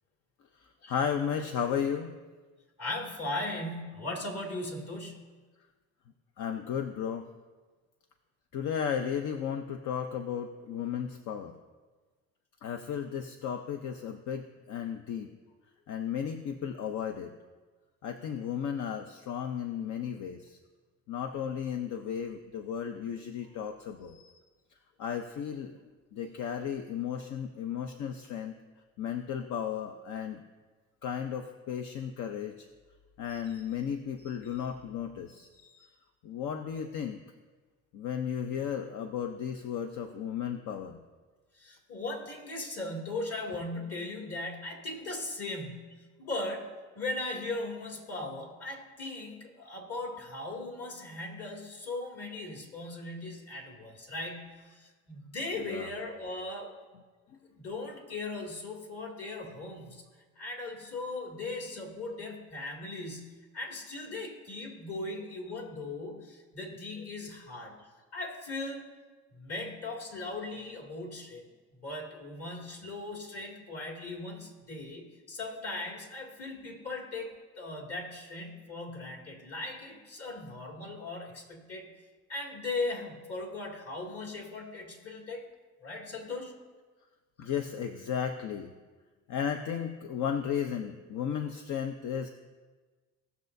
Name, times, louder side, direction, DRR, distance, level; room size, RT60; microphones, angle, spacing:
voice 1, 0.6-2.2 6.4-7.3 8.5-11.6 12.6-15.3 15.9-17.3 18.0-20.6 21.1-24.4 25.0-25.8 26.1-28.6 29.0-30.4 31.0-32.7 33.2-35.9 36.2-37.2 37.9-41.0 55.6-55.9 87.4-88.7 89.3-92.3, left 8 dB, 75° left, 6 dB, 0.7 m, -34 dB
voice 2, 2.8-5.3 41.5-46.7 46.9-56.7 57.5-60.0 60.4-67.8 68.1-68.9 69.3-71.4 71.8-81.9 82.3-85.5 85.8-86.6 87.4-87.5, left 2 dB, 50° left, 1 dB, 2.4 m, -38 dB
18.0 x 6.8 x 2.7 m, 1.3 s
cardioid pair, 90°, 30 cm